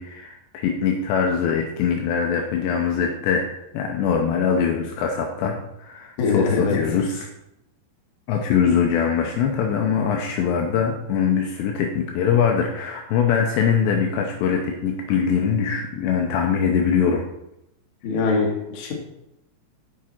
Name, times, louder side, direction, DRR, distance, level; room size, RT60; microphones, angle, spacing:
voice 1, 0.0-7.3 8.3-17.2, left 7 dB, 80° left, 2 dB, 2.7 m, -22 dB
voice 2, 6.2-6.8 18.0-18.9, left 4 dB, 60° left, -1 dB, 2.2 m, -22 dB
7.3 x 7.2 x 4.3 m, 0.87 s
omnidirectional pair, 5.4 m